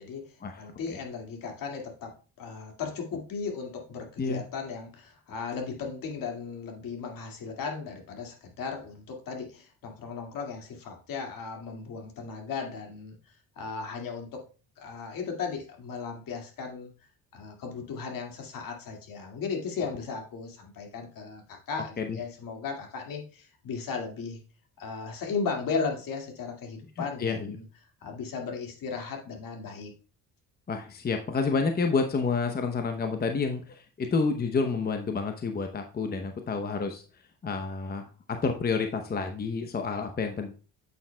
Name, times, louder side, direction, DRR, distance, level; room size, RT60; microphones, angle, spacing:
voice 1, 0.0-14.4 14.8-16.9 17.3-24.4 24.8-27.6 28.0-29.9, left 5 dB, 60° left, 2 dB, 2.2 m, -36 dB
voice 2, 27.0-27.6 30.7-37.0 37.4-38.1 38.4-40.5, left 4 dB, 25° left, 5 dB, 0.8 m, -29 dB
8.3 x 7.2 x 2.2 m, 0.36 s
cardioid pair, 100°, 37 cm